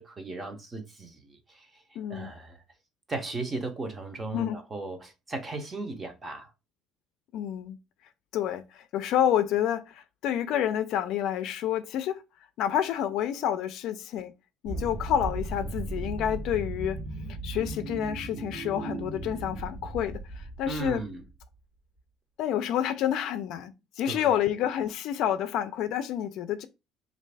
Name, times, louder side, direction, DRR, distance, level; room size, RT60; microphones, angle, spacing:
voice 1, 0.0-1.8 2.1-2.6 3.1-6.5 20.7-21.2 24.0-24.4, right 3 dB, 20° right, 0.7 m, -36 dB
voice 2, 2.0-2.3 4.3-4.6 7.3-7.8 8.3-12.2 12.6-14.3 14.6-17.0 17.4-21.0 22.4-26.7, left 10 dB, 70° left, 0.4 m, -29 dB
sound 1, 14.6-21.4, right 2 dB, 50° right, 0.8 m, -36 dB
3.2 x 2.5 x 3.3 m
cardioid pair, 145°, 0 cm